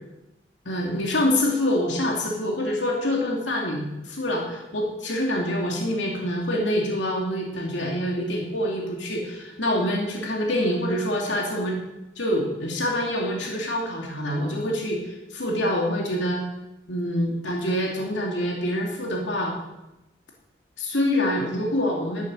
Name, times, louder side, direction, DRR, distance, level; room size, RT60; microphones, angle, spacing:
voice 1, 0.6-11.8 12.2-16.4 16.9-19.5 20.8-22.2, left 1 dB, 85° left, -1 dB, 2.7 m, -26 dB
12.0 x 9.4 x 8.9 m, 0.98 s
head